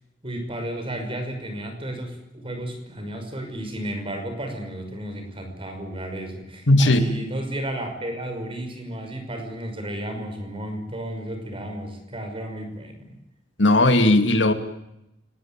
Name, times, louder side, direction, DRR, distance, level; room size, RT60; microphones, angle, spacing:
voice 1, 0.2-13.2, right 1 dB, 30° right, 6 dB, 5.6 m, -33 dB
voice 2, 6.7-7.0 13.6-14.5, left 1 dB, 70° left, 8 dB, 2.5 m, -16 dB
28.5 x 19.5 x 9.0 m, 0.87 s
head